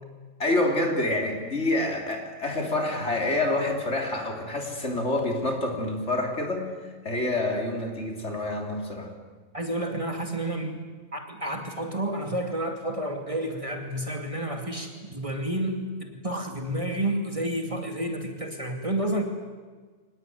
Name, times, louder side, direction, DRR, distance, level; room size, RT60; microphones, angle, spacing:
voice 1, 0.4-9.1, left 2 dB, 55° left, 2 dB, 3.7 m, -27 dB
voice 2, 9.5-10.9 11.1-19.2, right 1 dB, 25° right, 3 dB, 2.7 m, -30 dB
24.5 x 19.5 x 9.4 m, 1.4 s
omnidirectional pair, 1.4 m